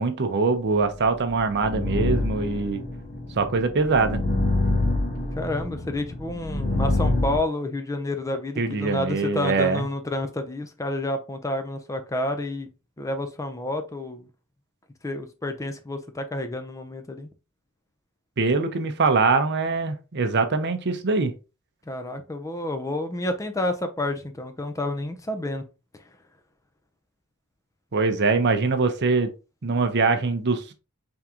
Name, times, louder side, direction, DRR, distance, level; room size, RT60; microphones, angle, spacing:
voice 1, 0.0-2.8 3.4-4.2 8.6-9.8 18.4-21.3 27.9-29.3 29.6-30.7, right 4 dB, 50° right, 0.6 m, -23 dB
sound 1, 0.9-7.4, left 2 dB, 40° left, 1.0 m, -26 dB
voice 2, 5.3-12.7 13.0-14.3 15.0-17.3 21.9-25.6, left 1 dB, 15° left, 0.5 m, -29 dB
3.7 x 3.5 x 2.9 m
head